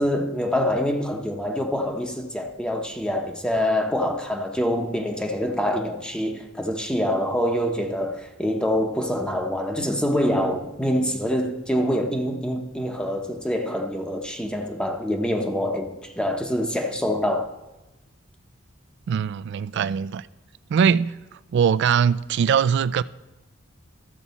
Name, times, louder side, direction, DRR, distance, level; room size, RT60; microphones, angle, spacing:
voice 1, 0.0-17.5, equal, 5° left, 0.7 m, -25 dB
voice 2, 19.1-20.3 20.7-21.2 21.5-23.0, right 7 dB, 60° right, 0.3 m, -21 dB
13.5 x 7.3 x 4.1 m
head